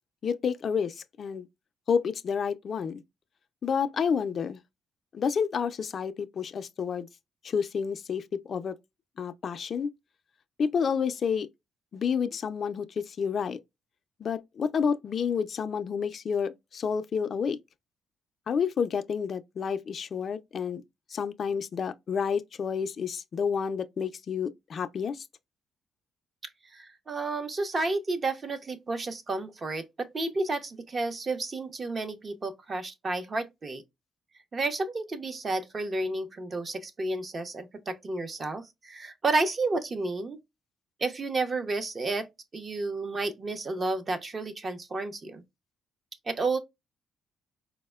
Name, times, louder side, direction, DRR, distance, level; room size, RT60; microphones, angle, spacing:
voice 1, 0.2-1.5 1.9-3.0 3.6-4.6 5.1-7.1 7.4-8.8 9.2-9.9 10.6-11.5 11.9-13.6 14.2-17.6 18.5-20.8 21.1-25.2, left 6 dB, 50° left, 0.3 m, -29 dB
voice 2, 26.7-33.8 34.5-40.4 41.0-42.3 42.5-45.4 46.3-46.6, right 3 dB, 35° right, 0.6 m, -31 dB
4.1 x 2.0 x 2.2 m
cardioid pair, 90°, 0 cm